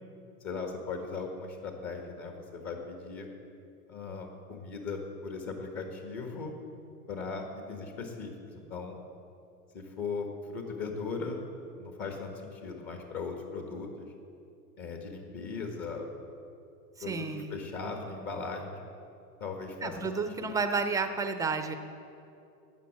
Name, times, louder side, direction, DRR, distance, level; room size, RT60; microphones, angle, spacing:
voice 1, 0.4-3.3 3.9-6.5 7.1-9.0 9.7-11.4 11.8-14.1 14.8-16.1 17.0-18.8 19.4-20.0 20.4-20.5, left 4 dB, 40° left, 3 dB, 1.7 m, -38 dB
voice 2, 17.0-17.5 19.8-21.8, right 4 dB, 10° right, 8 dB, 0.4 m, -31 dB
12.0 x 8.2 x 7.5 m, 2.7 s
hypercardioid pair, 115°, 48 cm